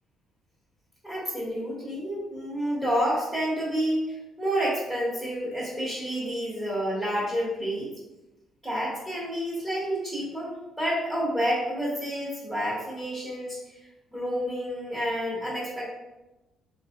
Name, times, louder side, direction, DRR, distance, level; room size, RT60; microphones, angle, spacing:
voice 1, 1.0-7.9 8.6-10.5 10.8-13.6 14.1-15.8, equal, 5° right, -7 dB, 1.3 m, -29 dB
3.2 x 2.5 x 3.6 m, 1.0 s
cardioid pair, 90°, 0 cm